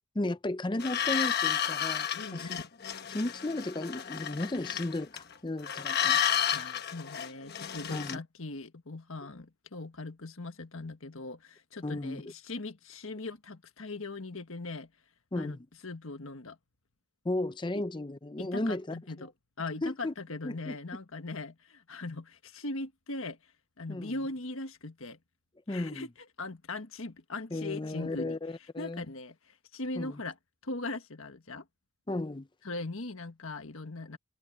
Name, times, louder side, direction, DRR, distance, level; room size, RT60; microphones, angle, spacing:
voice 1, 0.0-2.5 3.1-6.2 7.9-8.2 11.8-12.2 15.3-15.6 17.2-19.0 19.8-20.1 20.4-20.8 23.9-24.1 25.7-26.1 27.5-29.0 30.0-30.2 32.1-32.5, left 2 dB, 20° left, 0.5 m, -34 dB
sound 1, 0.8-5.3 5.6-8.2, left 9 dB, 45° left, 1.3 m, -31 dB
voice 2, 2.1-2.6 6.5-14.9 15.3-16.6 18.4-19.3 19.6-23.5 23.8-25.2 25.7-26.1 26.4-28.4 28.8-30.4 30.6-31.7 32.6-34.2, left 2 dB, 65° left, 1.5 m, -40 dB
head